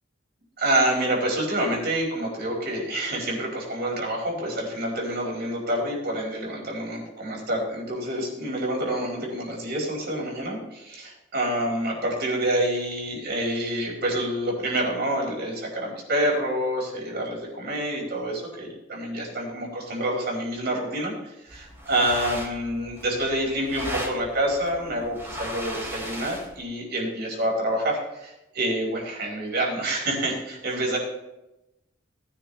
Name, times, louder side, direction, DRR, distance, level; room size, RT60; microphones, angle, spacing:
voice 1, 0.6-31.0, right 1 dB, 55° right, -2 dB, 4.8 m, -27 dB
sound 1, 21.5-26.6, equal, 10° right, 3.4 m, -37 dB
19.0 x 10.0 x 3.4 m, 0.94 s
head